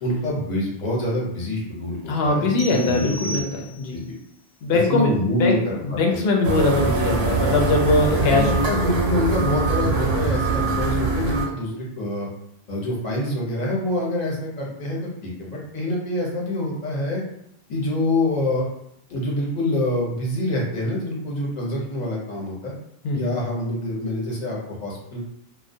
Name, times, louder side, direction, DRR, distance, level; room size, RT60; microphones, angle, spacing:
voice 1, 0.0-3.4 3.9-4.0 4.7-6.0 8.2-12.3 12.7-17.2 17.7-18.6 19.1-22.7 23.1-25.3, left 1 dB, 45° left, -4 dB, 0.8 m, -26 dB
voice 2, 2.1-4.0 4.6-8.8 10.9-11.1 23.0-23.2, left 3 dB, 75° left, 1 dB, 0.8 m, -22 dB
sound 1, 2.6-4.1, right 1 dB, 55° right, 0.6 m, -35 dB
sound 2, 6.4-11.5, right 3 dB, 90° right, 0.9 m, -23 dB
2.2 x 2.1 x 2.6 m, 0.76 s
omnidirectional pair, 1.0 m